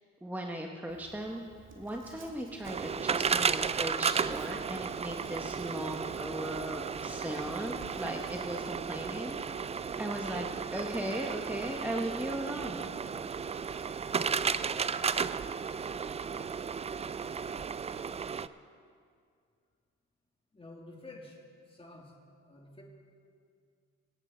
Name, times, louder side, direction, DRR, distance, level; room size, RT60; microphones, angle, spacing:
voice 1, 0.2-1.4 1.7-12.9, right 1 dB, 5° right, 1 dB, 1.1 m, -38 dB
Writing, 0.9-8.7, right 3 dB, 40° right, 1.9 m, -56 dB
sound 1, 2.6-18.5, right 6 dB, 20° right, 0.3 m, -34 dB
voice 2, 20.5-22.2 22.4-22.8, left 2 dB, 20° left, -1 dB, 2.7 m, -50 dB
24.5 x 9.0 x 4.4 m, 2.3 s
cardioid pair, 90°, 30 cm